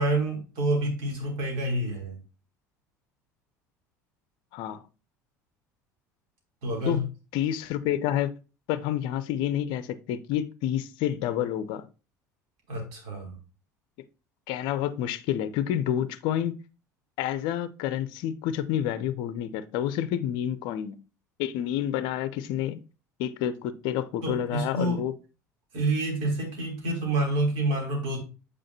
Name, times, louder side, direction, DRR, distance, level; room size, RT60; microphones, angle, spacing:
voice 1, 0.0-2.2 6.6-7.0 12.7-13.4 24.2-25.0 25.7-28.2, right 2 dB, 60° right, 3.2 m, -28 dB
voice 2, 4.5-4.8 6.9-7.0 7.3-8.3 8.7-11.8 14.5-16.5 17.2-21.0 21.4-22.8 23.2-25.1, left 11 dB, 55° left, 0.6 m, -29 dB
8.7 x 5.0 x 2.8 m
figure-of-eight pair, 65°, 9 cm